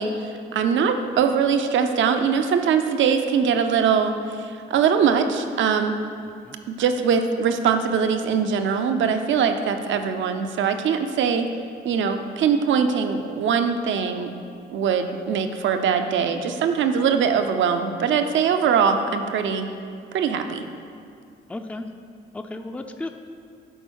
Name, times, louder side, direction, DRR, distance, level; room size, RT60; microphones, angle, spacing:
voice 1, 0.0-6.0 6.7-11.5 11.8-14.3 14.7-19.7 20.1-20.6, right 6 dB, 70° right, 7 dB, 0.7 m, -22 dB
voice 2, 21.5-21.8 22.3-23.1, left 2 dB, 5° left, 6 dB, 0.5 m, -33 dB
11.0 x 4.4 x 6.4 m, 2.3 s
cardioid pair, 90°, 20 cm